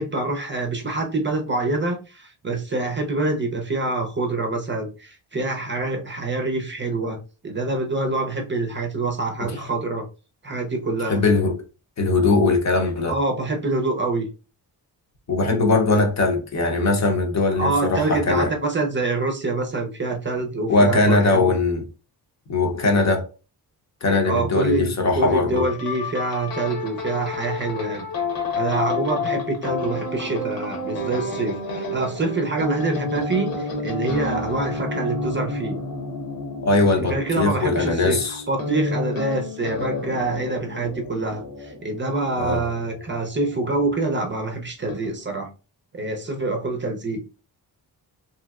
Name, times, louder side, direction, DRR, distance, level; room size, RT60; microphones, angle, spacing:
voice 1, 0.0-7.2 7.4-10.1 10.4-11.2 13.1-14.2 17.6-21.5 24.2-28.1 28.5-35.8 37.0-45.5 45.9-47.2, right 3 dB, 30° right, 0.6 m, -26 dB
voice 2, 11.1-11.6 12.0-13.2 15.3-18.5 20.7-21.8 22.5-23.2 24.0-25.6 36.6-38.4 42.4-42.6, left 3 dB, 45° left, 0.8 m, -20 dB
sound 1, 25.5-44.0 44.8-45.1, left 3 dB, 60° left, 1.0 m, -30 dB
3.0 x 2.7 x 2.3 m
cardioid pair, 105°, 39 cm